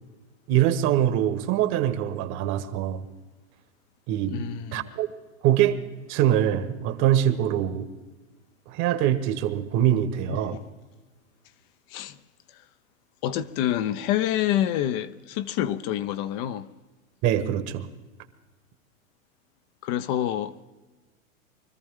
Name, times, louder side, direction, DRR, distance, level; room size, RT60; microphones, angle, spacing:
voice 1, 0.5-3.1 4.1-4.4 4.7-5.1 5.4-5.8 6.1-7.9 8.7-10.6 17.2-17.9, right 11 dB, 40° right, 1.4 m, -23 dB
voice 2, 4.3-4.9 10.3-10.6 11.9-12.2 13.2-16.7 19.8-20.5, left 11 dB, 40° left, 0.8 m, -27 dB
24.5 x 14.0 x 3.7 m
hypercardioid pair, 120°, 42 cm